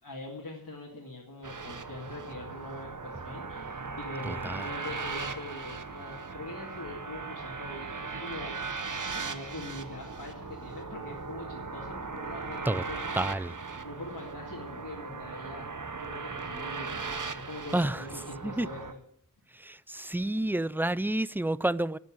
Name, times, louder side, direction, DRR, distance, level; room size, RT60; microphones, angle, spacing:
voice 1, 0.0-13.1 13.7-15.7 16.0-17.1 17.3-19.0, left 2 dB, 85° left, 2.4 m, -43 dB
sound 1, 1.4-18.9, right 4 dB, 60° right, 1.0 m, -38 dB
voice 2, 4.2-4.6 12.7-12.8 13.1-13.5 17.7-18.0 18.4-18.7 19.6-22.0, right 1 dB, 5° right, 0.4 m, -29 dB
12.5 x 7.2 x 8.7 m
wide cardioid pair, 40°, 35 cm